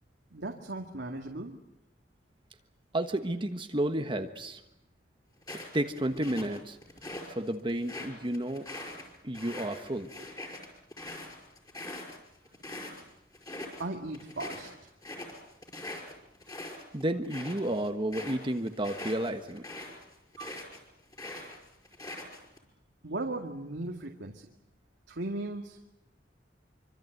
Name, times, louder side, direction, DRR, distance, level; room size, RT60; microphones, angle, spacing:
voice 1, 0.3-1.6 13.8-14.7 20.4-20.6 23.0-24.5 25.1-25.8, right 2 dB, 85° right, 2 dB, 2.3 m, -37 dB
voice 2, 2.9-4.6 5.5-6.8 7.3-8.7 9.2-10.1 16.9-19.6, right 1 dB, 30° right, 6 dB, 1.3 m, -31 dB
sound 1, 5.4-7.3 7.7-13.0 13.3-13.8 14.1-20.8 21.1-22.6, left 2 dB, 20° left, 5.3 m, -43 dB
26.5 x 25.0 x 8.0 m, 0.88 s
head